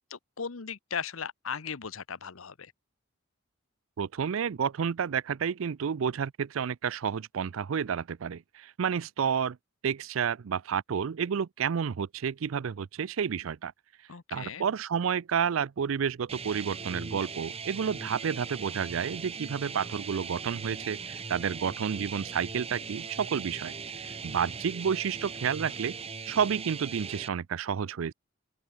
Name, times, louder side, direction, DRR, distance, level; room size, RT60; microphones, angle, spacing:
voice 1, 0.1-2.7 14.1-14.6, left 6 dB, 85° left, 1.0 m, -37 dB
voice 2, 4.0-9.6 9.8-13.7 14.3-23.7 24.2-25.9 26.3-28.1, right 7 dB, 75° right, 0.4 m, -30 dB
sound 1, 16.3-27.3, right 5 dB, 30° right, 1.4 m, -40 dB
open air
head